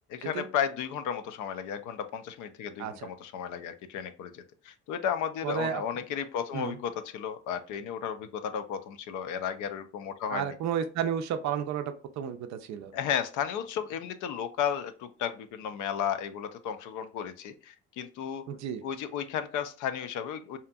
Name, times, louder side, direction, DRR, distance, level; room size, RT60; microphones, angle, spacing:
voice 1, 0.1-10.6 12.9-18.4 18.8-20.6, left 8 dB, 55° left, 11 dB, 0.4 m, -34 dB
voice 2, 2.8-3.1 5.4-5.8 6.5-6.8 10.3-12.9 18.5-18.8, right 8 dB, 50° right, 9 dB, 0.4 m, -32 dB
2.8 x 2.4 x 2.2 m, 0.37 s
hypercardioid pair, 60°, 37 cm